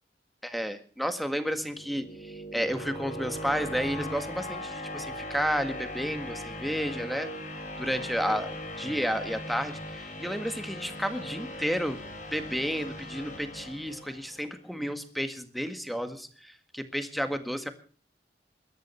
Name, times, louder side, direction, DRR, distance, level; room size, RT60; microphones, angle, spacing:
voice 1, 0.4-7.3 7.8-8.5 8.8-12.0 12.3-17.7, equal, ahead, 8 dB, 1.8 m, -32 dB
sound 1, 1.5-14.5, left 1 dB, 45° left, 3.6 m, -39 dB
22.0 x 10.5 x 5.8 m, 0.40 s
head